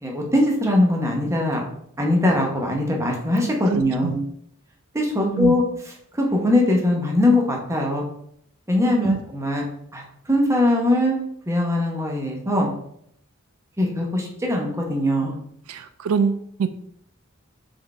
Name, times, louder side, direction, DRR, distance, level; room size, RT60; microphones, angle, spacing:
voice 1, 0.0-1.6 2.0-4.2 4.9-5.6 6.1-8.0 8.7-9.6 9.9-10.0 10.3-11.2 11.5-12.7 13.8-15.4, left 1 dB, 15° right, 0 dB, 0.9 m, -21 dB
voice 2, 3.7-4.1 5.3-5.6 9.0-9.2 15.7-16.7, right 6 dB, 85° right, 10 dB, 0.3 m, -24 dB
4.3 x 3.6 x 3.3 m, 0.70 s
head